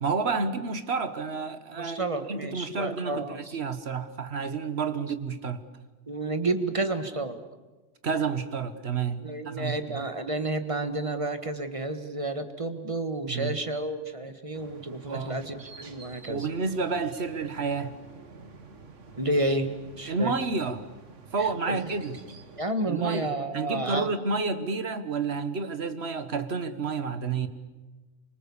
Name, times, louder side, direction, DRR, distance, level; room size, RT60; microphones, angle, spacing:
voice 1, 0.0-5.6 8.0-10.1 13.3-13.6 15.1-15.4 16.3-17.9 20.1-20.9 21.3-22.2 22.9-27.5, right 4 dB, 60° right, 1.6 m, -30 dB
voice 2, 1.8-3.6 6.1-7.4 9.2-16.5 19.2-19.7 20.0-20.3 21.4-21.9 22.6-24.1, right 2 dB, 25° right, 1.6 m, -31 dB
sound 1, 14.5-22.6, right 4 dB, 80° right, 1.9 m, -49 dB
27.5 x 25.0 x 7.2 m
omnidirectional pair, 1.3 m